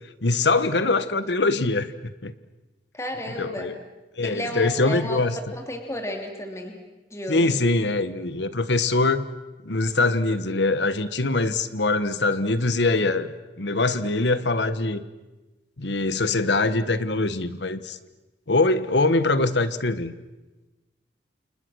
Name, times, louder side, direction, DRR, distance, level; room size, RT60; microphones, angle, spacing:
voice 1, 0.2-1.9 2.2-2.3 3.4-3.8 4.2-5.4 7.3-9.2 9.6-13.3 13.6-15.0 15.8-18.0 18.5-20.1, left 3 dB, 75° left, 12 dB, 1.3 m, -23 dB
voice 2, 2.9-3.7 4.2-5.2 5.5-6.8 7.1-7.6, left 1 dB, 15° left, 3 dB, 2.9 m, -33 dB
29.5 x 28.5 x 6.4 m, 1.1 s
head